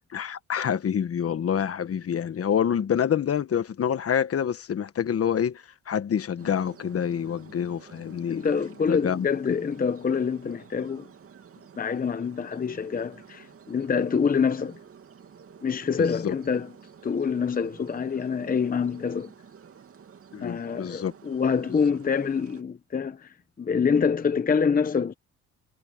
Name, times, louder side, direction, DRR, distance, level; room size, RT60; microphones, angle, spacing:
voice 1, 0.1-8.5 8.9-9.3 16.0-16.3 20.3-21.1 21.7-21.8, left 8 dB, 50° left, 1.4 m, -27 dB
sound 1, 6.4-22.6, right 7 dB, 50° right, 2.7 m, -50 dB
voice 2, 8.3-11.1 11.8-14.8 15.6-16.7 17.0-19.3 20.4-25.1, left 6 dB, 30° left, 0.9 m, -26 dB
cardioid pair, 90°, 30 cm